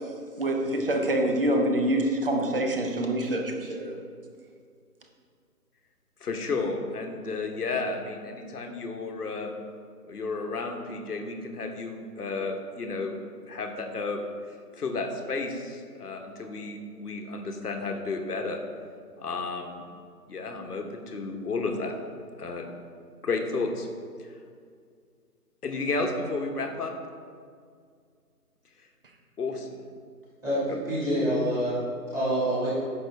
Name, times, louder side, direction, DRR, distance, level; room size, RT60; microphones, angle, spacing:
voice 1, 0.4-4.0, right 1 dB, 35° right, 2 dB, 0.9 m, -26 dB
voice 2, 6.2-9.5 10.1-13.1 13.5-14.2 14.8-18.6 19.2-19.8 20.3-21.9 22.4-22.7 23.2-23.9 24.2-24.3 25.6-26.9 29.4-29.7 30.7-30.8, left 3 dB, 70° left, 4 dB, 1.2 m, -32 dB
voice 3, 30.4-31.8 32.1-32.7, right 1 dB, 5° right, -12 dB, 2.0 m, -26 dB
9.5 x 6.0 x 3.3 m, 2.1 s
figure-of-eight pair, 155°, 48 cm